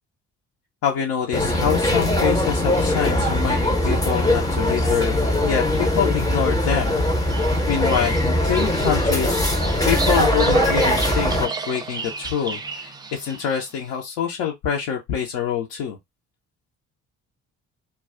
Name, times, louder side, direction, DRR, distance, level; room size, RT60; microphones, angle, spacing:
voice 1, 0.8-5.2 5.4-7.0 7.7-9.5 9.9-16.0, left 8 dB, 55° left, 0.7 m, -25 dB
sound 1, 1.3-11.5, left 1 dB, 10° left, 0.7 m, -21 dB
Bird vocalization bird call bird song, 7.0-13.7, right 4 dB, 10° right, 0.3 m, -32 dB
2.3 x 2.1 x 3.5 m
figure-of-eight pair, 45°, 41 cm